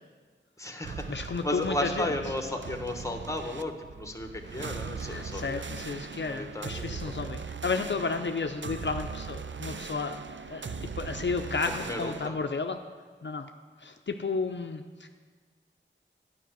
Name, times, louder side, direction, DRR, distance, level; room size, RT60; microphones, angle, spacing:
voice 1, 0.6-5.6 6.2-7.5 11.8-12.4, left 1 dB, 15° left, 5 dB, 1.1 m, -35 dB
sound 1, 0.8-12.3, right 5 dB, 70° right, 0.5 m, -39 dB
voice 2, 1.1-2.1 5.0-10.2 10.5-12.8 13.2-13.5 13.8-15.1, left 4 dB, 65° left, 5 dB, 0.5 m, -32 dB
10.5 x 5.4 x 8.0 m, 1.5 s
wide cardioid pair, 45°, 20 cm